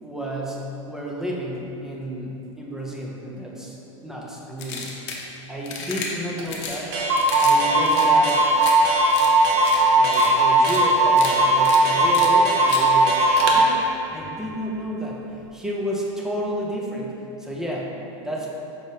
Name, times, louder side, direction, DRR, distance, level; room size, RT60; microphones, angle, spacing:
voice 1, 0.0-3.8 4.0-4.9 5.5-6.9 7.4-8.5 9.9-15.2 15.5-17.1 17.4-17.9 18.2-18.5, equal, 5° right, -3 dB, 0.3 m, -31 dB
sound 1, 4.6-5.2 5.6-6.1 6.5-6.8 7.2-7.6 7.8-8.7 9.1-9.3 9.6-9.8 10.1-10.3 10.6-10.8 11.1-11.3 11.6-11.8 12.1-12.3 12.7-12.8, left 6 dB, 60° left, 0.7 m, -33 dB
Clock, 6.4-6.5 6.7-6.8 6.9-13.6, right 2 dB, 55° right, 0.6 m, -18 dB
5.2 x 3.4 x 2.7 m, 2.9 s
supercardioid pair, 155°, 16 cm